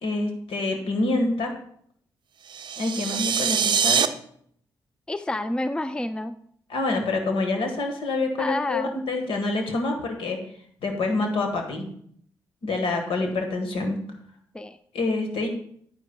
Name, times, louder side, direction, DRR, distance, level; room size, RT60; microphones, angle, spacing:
voice 1, 0.0-1.5 2.8-4.1 6.7-10.4 10.8-11.9 12.6-14.0 14.9-15.5, left 2 dB, 70° left, 4 dB, 1.5 m, -26 dB
sound 1, 2.5-4.1, right 7 dB, 50° right, 0.5 m, -23 dB
voice 2, 5.1-6.4 8.4-8.9 14.5-14.8, left 1 dB, 10° left, 11 dB, 0.5 m, -29 dB
9.4 x 9.4 x 2.3 m, 0.65 s
hypercardioid pair, 45°, 10 cm